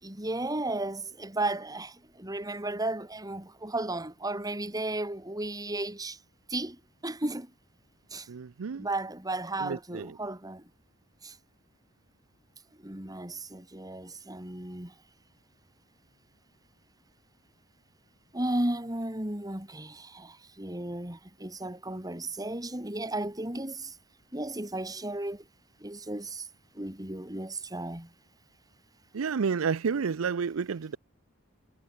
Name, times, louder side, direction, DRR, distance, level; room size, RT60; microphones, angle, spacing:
voice 1, 0.0-6.2 6.5-7.5 8.1-8.3 8.8-10.6 11.2-11.4 12.8-14.9 18.3-23.9 24.3-25.4 25.8-26.5 26.7-28.1, right 2 dB, 20° right, 3.4 m, -34 dB
voice 2, 8.3-8.9 9.6-10.1 29.1-31.0, right 5 dB, 75° right, 0.5 m, -30 dB
head